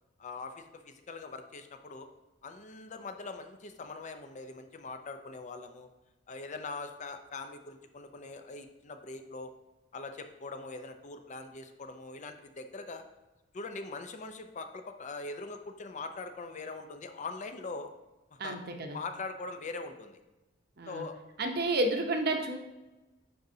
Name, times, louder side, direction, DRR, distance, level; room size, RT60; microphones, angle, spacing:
voice 1, 0.2-2.1 2.4-5.9 6.3-9.5 9.9-13.0 13.5-17.9 18.3-18.6 18.9-20.2 20.9-21.2, left 3 dB, 40° left, 7 dB, 0.5 m, -42 dB
voice 2, 18.4-19.0 20.8-21.1 21.4-22.6, right 2 dB, 55° right, 4 dB, 0.8 m, -31 dB
10.0 x 3.9 x 2.7 m, 1.1 s
head